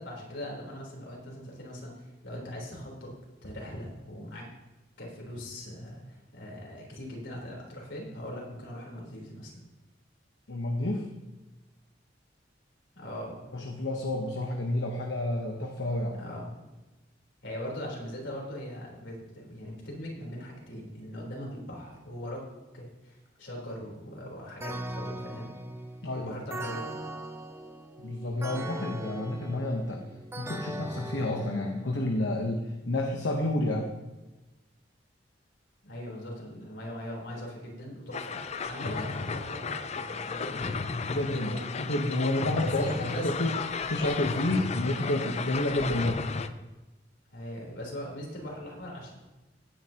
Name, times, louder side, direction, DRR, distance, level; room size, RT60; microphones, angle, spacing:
voice 1, 0.0-3.1 3.4-4.5 5.0-9.6 12.9-13.5 16.1-16.6 17.4-22.4 22.7-25.5 26.2-27.0 35.8-40.8 41.3-41.8 42.6-43.5 47.3-49.1, equal, 90° left, -2 dB, 3.8 m, -40 dB
voice 2, 10.5-11.1 13.5-16.2 26.0-26.3 28.0-30.0 30.4-33.9 41.1-43.6 43.9-46.2, left 1 dB, 75° left, 1 dB, 1.1 m, -30 dB
sound 1, 24.6-32.3, right 1 dB, 15° right, 0.8 m, -40 dB
sound 2, 38.1-46.5, left 4 dB, 35° left, 0.5 m, -34 dB
17.0 x 9.7 x 2.9 m, 1.1 s
head